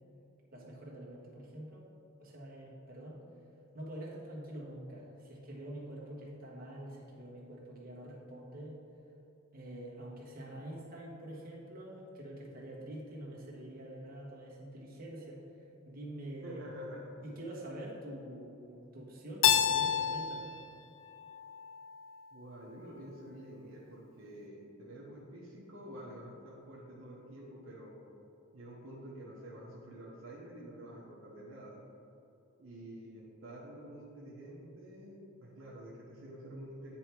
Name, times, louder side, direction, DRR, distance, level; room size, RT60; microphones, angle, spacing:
voice 1, 0.5-1.9 2.2-3.2 3.7-8.8 9.5-16.6 17.2-20.5, right 1 dB, 45° right, -5 dB, 1.3 m, -46 dB
voice 2, 16.4-17.1 22.3-28.0 28.5-31.8 32.6-37.0, right 1 dB, 75° right, -4 dB, 1.0 m, -48 dB
Keyboard (musical), 19.4-22.2, left 9 dB, 65° left, 0.3 m, -30 dB
9.4 x 3.5 x 4.5 m, 2.7 s
head